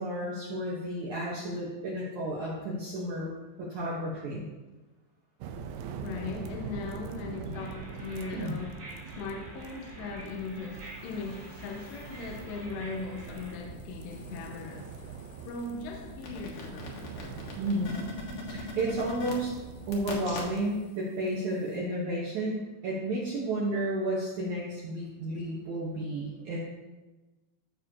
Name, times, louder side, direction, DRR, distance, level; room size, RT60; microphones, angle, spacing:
voice 1, 0.0-3.3 3.6-4.4 8.3-8.6 17.6-17.9 18.5-19.5 19.9-26.6, right 1 dB, 70° right, -5 dB, 1.8 m, -32 dB
sound 1, 5.4-20.7, right 6 dB, 90° right, 2.0 m, -43 dB
voice 2, 6.0-8.8 9.1-14.9 15.4-17.0, left 4 dB, 85° left, 0 dB, 2.9 m, -39 dB
sound 2, 7.5-13.6, right 2 dB, 45° right, 1.5 m, -48 dB
sound 3, 10.7-12.6 13.1-20.9 21.2-21.3, left 3 dB, 60° left, 2.1 m, -44 dB
14.0 x 6.8 x 2.8 m, 1.2 s
omnidirectional pair, 5.0 m